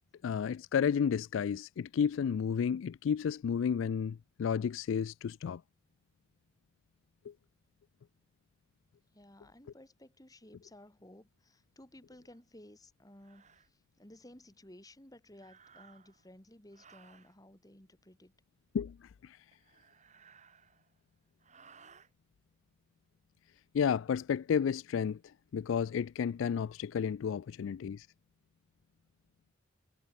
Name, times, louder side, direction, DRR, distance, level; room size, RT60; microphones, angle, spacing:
voice 1, 0.2-5.6 7.3-7.4 18.7-19.0 19.2-19.4 23.7-25.2 25.5-28.1, left 7 dB, 85° left, 0.3 m, -32 dB
voice 2, 9.1-18.3, left 1 dB, 20° left, 2.8 m, -56 dB
sound 1, 12.3-12.4 13.2-13.7 15.3-16.3 16.7-17.3 19.5-21.0 21.4-22.1, right 6 dB, 40° right, 5.2 m, -60 dB
head